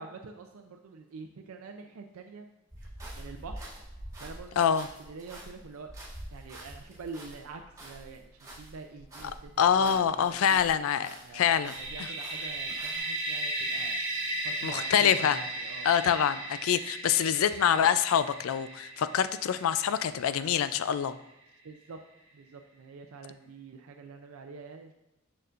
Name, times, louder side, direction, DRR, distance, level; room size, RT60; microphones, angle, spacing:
voice 1, 0.0-2.5 3.1-3.7 4.2-4.6 5.0-10.6 11.2-13.9 14.4-15.9 21.6-22.0 22.3-24.9, right 4 dB, 90° right, 4 dB, 0.5 m, -46 dB
sound 1, 2.7-10.8 11.0-13.0, right 1 dB, 15° right, 2.1 m, -46 dB
voice 2, 4.6-4.9 9.6-12.1 14.6-15.4 15.8-21.1, left 8 dB, 75° left, 13 dB, 0.4 m, -26 dB
sound 2, 11.4-21.1, right 1 dB, 60° right, 1.3 m, -36 dB
6.7 x 6.5 x 2.5 m, 0.92 s
head